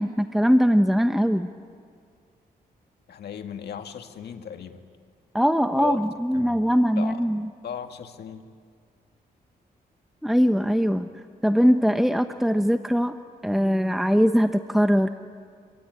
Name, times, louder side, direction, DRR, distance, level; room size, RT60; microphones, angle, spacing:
voice 1, 0.0-1.5 5.3-7.4 10.2-11.1 11.4-13.2 13.4-15.1, equal, ahead, 8 dB, 0.9 m, -21 dB
voice 2, 3.1-4.8 5.8-6.0 6.3-6.6 7.0-7.3 7.6-8.4, left 8 dB, 80° left, 6 dB, 1.9 m, -36 dB
26.5 x 23.0 x 9.7 m, 2.1 s
cardioid pair, 95°, 17 cm